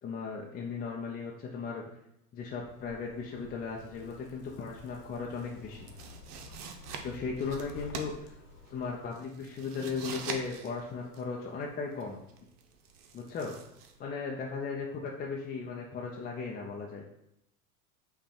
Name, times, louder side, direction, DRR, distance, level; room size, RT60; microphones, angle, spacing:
voice 1, 0.0-2.0 2.3-5.9 7.0-8.3 8.7-12.2 13.1-13.6 14.0-17.0, left 5 dB, 20° left, -1 dB, 0.5 m, -37 dB
Zipper (clothing), 2.4-9.1, left 3 dB, 70° left, 1.2 m, -52 dB
sound 1, 5.1-14.0, right 5 dB, 85° right, 0.7 m, -45 dB
5.5 x 2.2 x 4.2 m, 0.82 s
hypercardioid pair, 105°, 45 cm